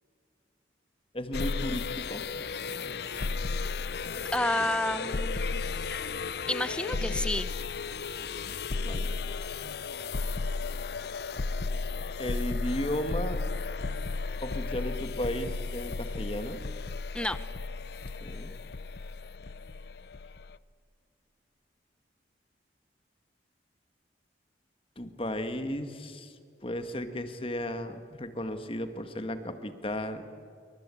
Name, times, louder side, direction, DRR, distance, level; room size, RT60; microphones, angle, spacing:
voice 1, 1.1-2.2 8.8-9.1 12.2-13.4 14.4-16.6 18.2-18.5 25.0-26.3 26.6-30.2, left 1 dB, 30° left, 9 dB, 1.7 m, -34 dB
sound 1, 1.3-20.6, left 4 dB, 60° left, 0.6 m, -34 dB
voice 2, 4.3-5.4 6.5-7.5 17.1-17.4, left 1 dB, 5° left, 13 dB, 0.8 m, -29 dB
27.5 x 23.5 x 8.5 m, 2.3 s
head